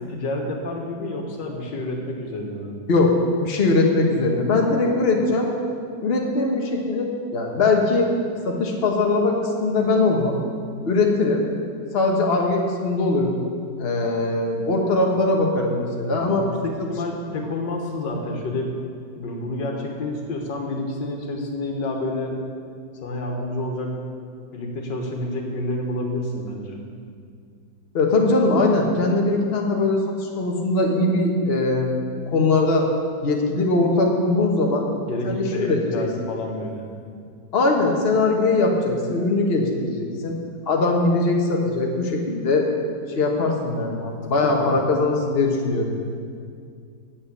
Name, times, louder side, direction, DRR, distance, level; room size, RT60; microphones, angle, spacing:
voice 1, 0.1-2.7 16.1-18.7 19.2-22.4 23.0-24.0 24.5-26.8 35.0-36.9 44.0-44.8, left 2 dB, 85° left, 2 dB, 2.0 m, -29 dB
voice 2, 3.4-5.5 6.0-8.1 8.4-10.4 10.9-11.4 11.9-13.3 13.8-16.4 16.8-16.9 27.9-31.9 32.3-32.9 33.2-34.9 35.2-36.1 37.5-40.4 40.7-42.7 43.1-44.0 44.3-45.9, left 2 dB, 35° left, 0 dB, 1.3 m, -21 dB
8.6 x 7.6 x 8.4 m, 2.3 s
omnidirectional pair, 1.9 m